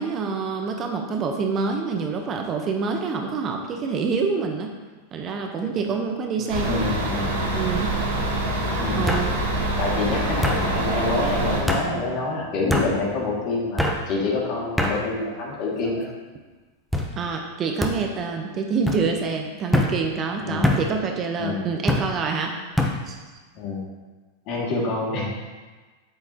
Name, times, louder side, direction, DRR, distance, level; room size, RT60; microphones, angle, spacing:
voice 1, 0.0-4.7 5.1-6.8 7.5-7.9 8.9-9.3 17.1-22.5 23.1-23.2, right 5 dB, 35° right, 3 dB, 0.9 m, -26 dB
sound 1, 5.6-6.0 6.4-6.9 8.0-8.1 9.1-9.3 10.4-10.6 11.7-11.9 12.7-12.9 13.8-14.0 14.8-15.0 15.7-16.1 16.9-17.1 17.8-18.0 18.8-19.0 19.7-19.9 20.6-20.8 21.9-22.1 22.8-23.0, left 1 dB, ahead, 1.0 m, -23 dB
sound 2, 6.5-11.6, right 1 dB, 75° right, 1.8 m, -25 dB
voice 2, 6.6-7.3 8.8-9.2 9.8-16.1 20.4-20.7 21.4-21.6 23.5-23.8 24.5-25.3, left 3 dB, 50° left, -3 dB, 2.3 m, -27 dB
7.9 x 6.9 x 2.9 m, 1.3 s
hypercardioid pair, 100°, 0 cm